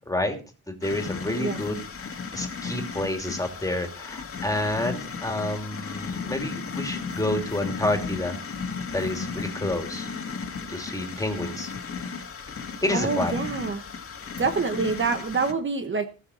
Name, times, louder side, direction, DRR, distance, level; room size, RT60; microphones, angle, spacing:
voice 1, 0.1-0.4 0.7-8.4 8.9-10.1 10.7-11.7 12.8-13.4, left 1 dB, 10° left, 4 dB, 2.8 m, -29 dB
sound 1, 0.8-15.5, left 5 dB, 40° left, 2.1 m, -35 dB
voice 2, 12.9-13.8 14.4-16.1, right 4 dB, 35° right, 7 dB, 1.1 m, -26 dB
19.5 x 6.6 x 4.2 m, 0.34 s
cardioid pair, 130°, 33 cm